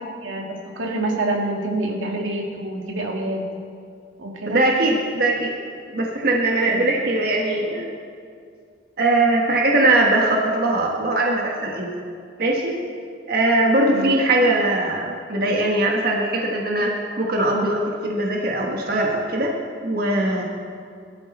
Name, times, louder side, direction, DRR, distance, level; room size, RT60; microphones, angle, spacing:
voice 1, 0.2-3.4 4.2-4.6 6.6-6.8 13.9-14.1, right 2 dB, 85° right, -1 dB, 2.4 m, -27 dB
voice 2, 4.5-5.5 5.9-7.9 9.0-11.9 12.4-12.8 13.3-19.5 19.8-20.4, right 2 dB, 50° right, -1 dB, 1.4 m, -20 dB
21.5 x 13.0 x 4.2 m, 2.3 s
head